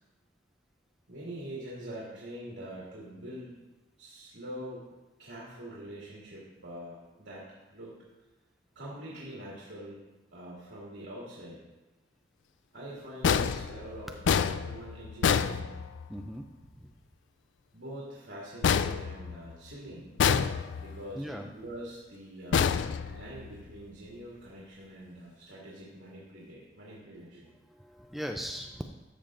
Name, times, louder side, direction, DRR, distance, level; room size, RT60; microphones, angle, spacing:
voice 1, 1.1-3.5 4.0-4.8 5.2-7.5 7.7-8.0 8.7-10.0 10.3-11.6 12.7-15.7 17.7-20.1 20.8-22.7 23.0-27.5, right 1 dB, 85° right, -7 dB, 2.3 m, -44 dB
sound 1, 13.2-16.3 18.6-19.7 20.2-21.0 22.5-23.6, left 7 dB, 90° left, 0.3 m, -28 dB
voice 2, 16.1-16.4 16.8-16.9 21.2-21.5 23.0-23.2 27.7-28.8, equal, ahead, 3 dB, 0.4 m, -39 dB
13.0 x 6.9 x 2.5 m, 1.1 s
head